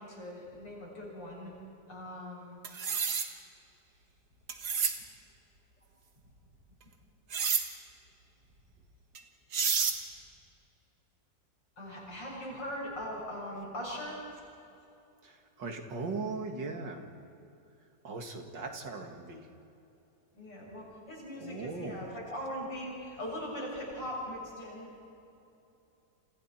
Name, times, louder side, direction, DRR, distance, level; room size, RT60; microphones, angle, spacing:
voice 1, 0.0-1.5 1.9-2.6 11.8-14.2 20.3-24.9, equal, 90° left, -4 dB, 7.8 m, -40 dB
sound 1, 2.6-3.3 4.5-5.0 7.3-7.6 9.1-9.2 9.5-10.0, right 6 dB, 60° right, 2.0 m, -29 dB
voice 2, 15.2-17.0 18.0-19.5 21.4-22.0, right 3 dB, 80° right, 3 dB, 2.8 m, -39 dB
29.5 x 27.5 x 4.5 m, 2.7 s
omnidirectional pair, 1.9 m